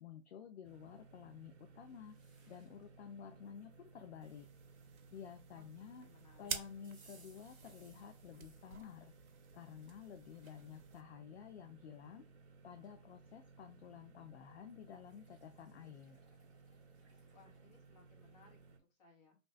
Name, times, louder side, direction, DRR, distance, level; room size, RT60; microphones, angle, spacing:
voice 1, 0.0-2.2 2.5-4.5 5.1-6.1 6.4-9.1 9.5-12.2 12.6-16.2, left 8 dB, 55° left, 7 dB, 0.5 m, -52 dB
sound 1, 0.6-18.8, right 4 dB, 50° right, 0.8 m, -61 dB
sound 2, 1.8-2.9 3.4-5.0 6.8-8.7 9.3-10.7 11.3-11.4 12.5-12.6 12.8-13.4 14.7-18.7, right 4 dB, 20° right, 0.9 m, -70 dB
sound 3, 4.2-11.0, right 6 dB, 85° right, 0.7 m, -50 dB
voice 2, 5.5-6.5 17.3-19.4, left 4 dB, 30° left, 0 dB, 1.1 m, -66 dB
2.9 x 2.8 x 3.1 m, 0.29 s
hypercardioid pair, 150°, 41 cm